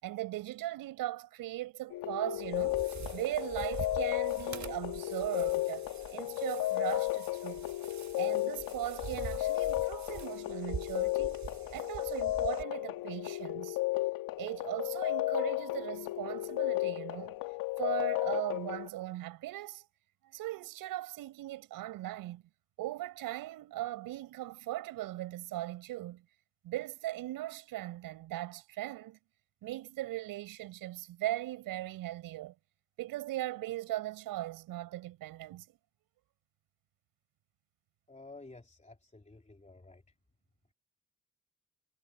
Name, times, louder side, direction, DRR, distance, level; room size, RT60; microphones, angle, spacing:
voice 1, 0.0-2.8 3.1-7.7 8.1-11.4 11.7-13.8 14.4-17.4 17.8-19.9 20.2-22.4 22.8-26.3 26.6-29.2 29.6-32.5 33.0-35.8, right 15 dB, 75° right, 5.4 m, -39 dB
sound 1, 1.9-18.9, left 18 dB, 80° left, 1.9 m, -34 dB
sound 2, 2.4-12.6, right 7 dB, 55° right, 2.6 m, -46 dB
voice 2, 38.1-40.0, left 3 dB, 20° left, 3.4 m, -52 dB
hypercardioid pair, 45°, 34 cm